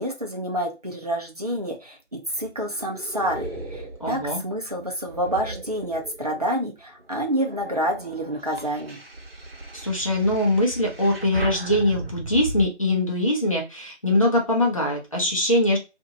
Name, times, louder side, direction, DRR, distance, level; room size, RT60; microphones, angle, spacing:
voice 1, 0.0-9.0, equal, 35° right, 1 dB, 0.7 m, -28 dB
sound 1, 2.2-6.5 7.0-12.6, right 1 dB, 55° right, 1.0 m, -36 dB
voice 2, 4.0-4.4 9.7-15.8, left 1 dB, 30° left, -1 dB, 0.8 m, -22 dB
2.8 x 2.6 x 2.7 m, 0.27 s
figure-of-eight pair, 165°, 35 cm